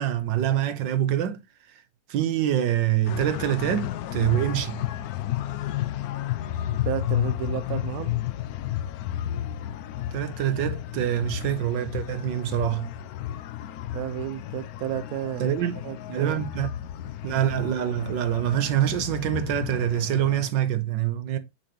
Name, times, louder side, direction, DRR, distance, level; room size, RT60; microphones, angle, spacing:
voice 1, 0.0-1.4 2.1-4.8 10.1-12.9 15.4-15.8 16.1-16.7 17.2-21.4, right 11 dB, 80° right, 1.5 m, -25 dB
sound 1, 3.0-20.5, left 12 dB, 75° left, 0.9 m, -32 dB
voice 2, 6.8-8.2 13.9-15.5 15.8-16.4, right 11 dB, 65° right, 1.0 m, -32 dB
7.0 x 5.8 x 2.9 m
omnidirectional pair, 2.0 m